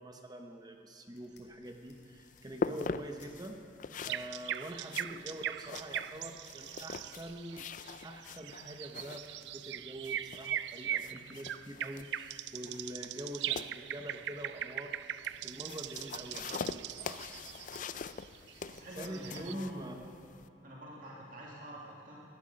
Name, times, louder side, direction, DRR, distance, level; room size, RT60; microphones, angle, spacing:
voice 1, 0.0-3.6 4.0-7.7 8.0-15.0 15.2-17.2 19.0-19.9, right 1 dB, 25° right, 4 dB, 0.9 m, -45 dB
sound 1, 1.1-3.3 4.0-4.2 4.8-6.4 6.6-7.3, left 5 dB, 70° left, 2.5 m, -64 dB
sound 2, 1.6-20.5, left 5 dB, 45° left, 0.4 m, -44 dB
sound 3, 3.9-19.5, right 11 dB, 75° right, 0.3 m, -41 dB
voice 2, 18.7-20.1 20.6-22.2, right 1 dB, 50° right, -5 dB, 2.2 m, -47 dB
19.0 x 12.5 x 5.3 m, 2.6 s
head